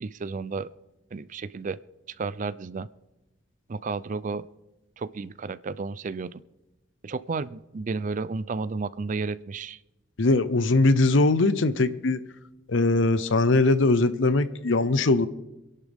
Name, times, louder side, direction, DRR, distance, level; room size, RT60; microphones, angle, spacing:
voice 1, 0.0-0.7 1.1-1.8 2.1-2.9 3.7-4.4 5.0-6.4 7.0-9.8, right 4 dB, 40° right, 0.4 m, -32 dB
voice 2, 10.2-12.2 12.7-15.3, left 2 dB, 70° left, 0.7 m, -21 dB
26.5 x 11.0 x 3.5 m
head